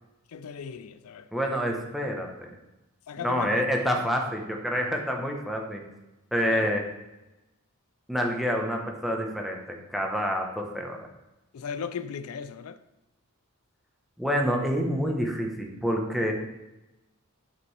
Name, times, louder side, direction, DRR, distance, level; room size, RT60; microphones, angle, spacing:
voice 1, 0.3-1.3 3.1-3.6 6.4-6.7 11.5-12.8, left 6 dB, 85° left, 0.4 m, -37 dB
voice 2, 1.3-2.5 3.2-5.8 6.3-6.8 8.1-11.0 14.2-16.3, equal, ahead, 1.0 m, -27 dB
11.0 x 5.1 x 3.3 m
head